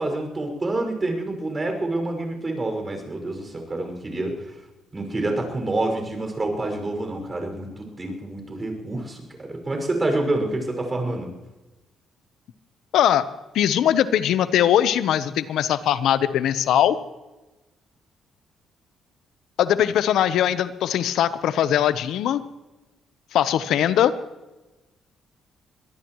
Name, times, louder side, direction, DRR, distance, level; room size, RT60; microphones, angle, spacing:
voice 1, 0.0-4.5 4.9-11.3, right 2 dB, 25° right, 4 dB, 5.8 m, -27 dB
voice 2, 12.9-13.3 13.5-17.0 19.6-22.4 23.3-24.1, left 10 dB, 80° left, 13 dB, 0.9 m, -20 dB
24.0 x 19.0 x 3.1 m, 1.1 s
cardioid pair, 90°, 0 cm